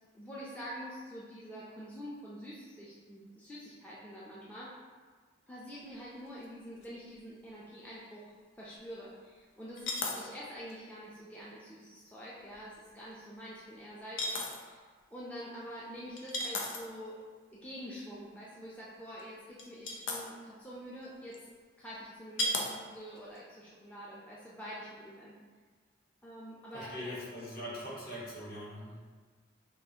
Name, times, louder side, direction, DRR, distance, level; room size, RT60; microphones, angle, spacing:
voice 1, 0.1-4.7 5.5-14.8 15.1-17.2 17.6-21.4 21.8-25.3 26.2-27.1, equal, 10° left, -8 dB, 0.4 m, -46 dB
sound 1, 6.4-6.5 6.8-6.9 9.8-10.3 10.7-10.8 12.5-12.7 14.2-14.6 16.2-17.0 19.2-19.3 19.6-20.2 21.3-21.4 22.4-22.7 23.2-23.4, left 2 dB, 85° left, 0.6 m, -34 dB
voice 2, 26.7-29.0, equal, 50° left, -7 dB, 1.1 m, -42 dB
6.2 x 2.4 x 2.7 m, 1.5 s
head